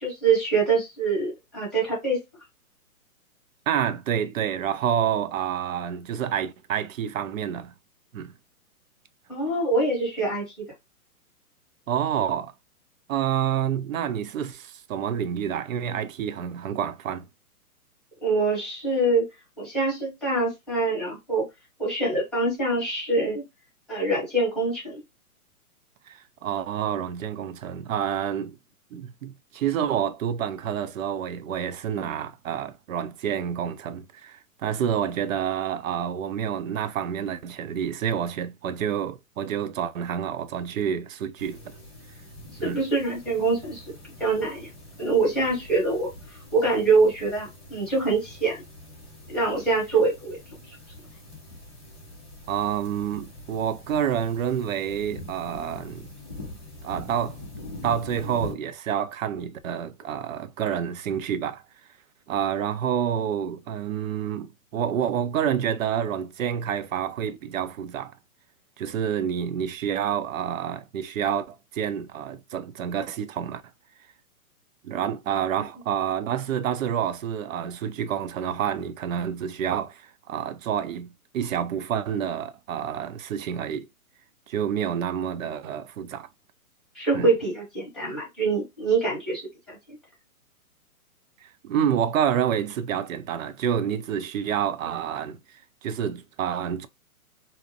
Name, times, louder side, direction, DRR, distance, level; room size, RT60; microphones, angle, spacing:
voice 1, 0.0-2.2 9.3-10.7 18.2-19.3 19.6-21.5 21.8-23.4 23.9-25.0 42.6-43.8 44.2-44.7 45.0-46.1 46.5-48.6 49.3-50.4 86.9-90.0, right 3 dB, ahead, 0.9 m, -24 dB
voice 2, 3.7-7.7 8.1-8.3 11.9-12.5 13.1-17.3 26.1-28.6 28.9-41.8 42.6-42.8 52.5-56.1 56.8-57.4 57.8-61.6 62.3-68.1 68.8-73.6 74.8-83.9 84.5-86.3 87.1-87.3 91.4-96.9, right 9 dB, 60° right, 0.5 m, -28 dB
sound 1, 41.4-58.5, left 1 dB, 20° left, 0.3 m, -43 dB
2.6 x 2.0 x 2.7 m
hypercardioid pair, 150°, 45 cm